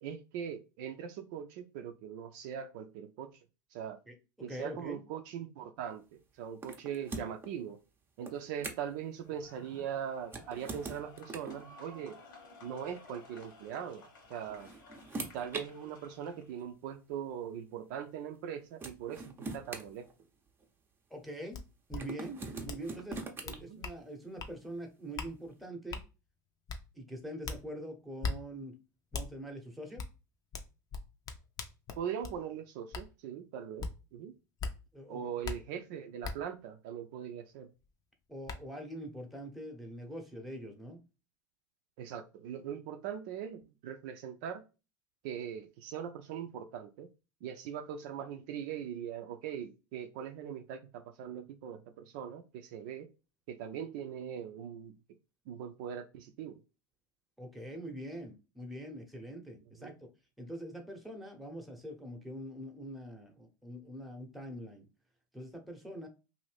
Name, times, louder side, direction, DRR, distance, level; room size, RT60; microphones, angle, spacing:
voice 1, 0.0-3.3 3.7-4.0 4.4-7.8 8.2-12.2 12.6-14.7 15.3-20.1 23.6-23.8 32.0-34.3 35.1-37.7 42.0-44.6 45.2-47.1 47.4-53.1 53.5-55.0 55.5-56.5 59.8-60.0, right 8 dB, 65° right, 0.5 m, -41 dB
voice 2, 4.1-5.0 21.1-21.6 21.9-26.0 26.9-28.8 29.1-30.0 34.9-35.3 38.3-41.0 57.4-59.9 60.4-64.9 65.3-66.1, right 1 dB, ahead, 0.9 m, -44 dB
sound 1, 6.6-7.5 8.2-9.0 10.2-11.6 12.9-13.1 14.2-15.7 16.6-16.7 18.4-18.5 18.8-20.6 22.0-23.6, right 3 dB, 20° right, 0.7 m, -42 dB
sound 2, 9.2-16.6, left 3 dB, 80° left, 1.3 m, -56 dB
sound 3, 21.5-21.6 21.9-22.0 22.7-22.8 23.1-24.0 24.4-24.5 25.2-25.3 25.9-26.0 26.7-26.8 27.4-27.6 28.2-28.4 29.1-29.3 30.0-30.1 30.5-32.4 32.9-33.1 33.8-33.9 34.6-34.7 35.4-35.6 36.2-36.3 37.8-37.9 38.5-38.6, left 4 dB, 35° left, 0.6 m, -38 dB
2.7 x 2.6 x 3.3 m
hypercardioid pair, 95°, 11 cm